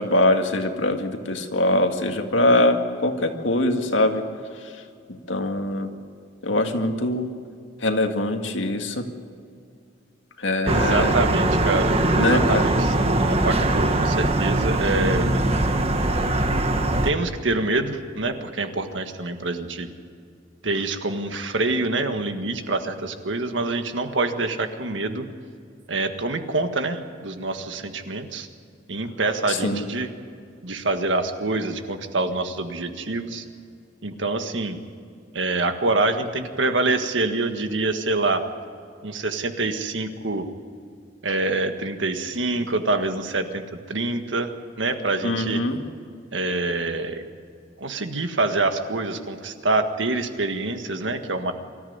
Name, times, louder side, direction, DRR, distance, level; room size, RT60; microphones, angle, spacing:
voice 1, 0.0-4.2 4.6-4.8 5.1-5.9 6.4-7.3 7.8-9.0 10.4-11.2 12.2-12.7 29.5-29.8 45.2-45.8, left 1 dB, 80° left, 5 dB, 2.0 m, -23 dB
voice 2, 10.6-15.3 17.0-19.9 20.6-25.3 25.9-28.5 28.9-30.1 30.6-33.4 34.0-34.8 35.3-38.4 39.0-40.5 41.2-43.6 43.9-45.6 46.3-47.2 47.8-51.5, right 2 dB, 75° right, 7 dB, 1.6 m, -26 dB
sound 1, 10.7-17.1, right 2 dB, 35° right, 1.3 m, -21 dB
24.5 x 14.0 x 9.5 m, 2.3 s
head